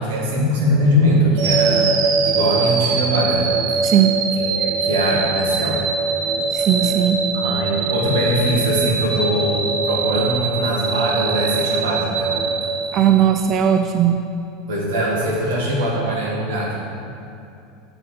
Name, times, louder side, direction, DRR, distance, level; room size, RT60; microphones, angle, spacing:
voice 1, 0.0-1.9 2.3-3.8 4.4-5.8 7.3-12.3 14.7-16.8, equal, 85° right, -3 dB, 1.9 m, -21 dB
sound 1, 1.4-13.5, right 4 dB, 60° right, 0.9 m, -22 dB
voice 2, 6.5-7.2 12.9-14.2, right 10 dB, 40° right, 7 dB, 0.3 m, -17 dB
7.7 x 3.9 x 6.6 m, 2.6 s
supercardioid pair, 110°, 0 cm